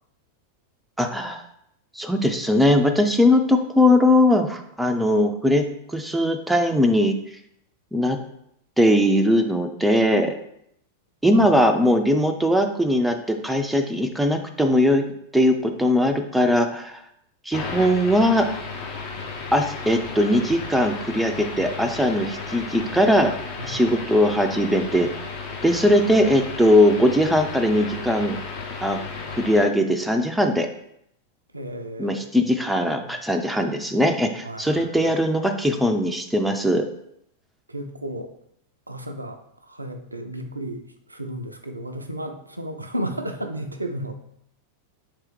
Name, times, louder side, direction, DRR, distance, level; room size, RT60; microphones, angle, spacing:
voice 1, 1.0-1.4 2.0-7.1 7.9-8.2 8.8-10.3 11.2-15.0 15.3-17.0 17.5-18.5 19.5-23.3 23.6-25.3 25.6-28.4 28.8-29.0 29.3-30.7 32.0-36.9, left 1 dB, 5° right, 4 dB, 0.4 m, -20 dB
voice 2, 11.3-11.7 23.6-23.8 31.5-32.2 34.4-35.2 37.7-38.3 38.9-39.4 39.7-40.8 41.1-44.1, right 1 dB, 85° right, 5 dB, 0.4 m, -33 dB
sound 1, 17.5-29.6, left 4 dB, 45° left, 0.9 m, -34 dB
3.4 x 3.1 x 4.6 m, 0.74 s
figure-of-eight pair, 90°, 0 cm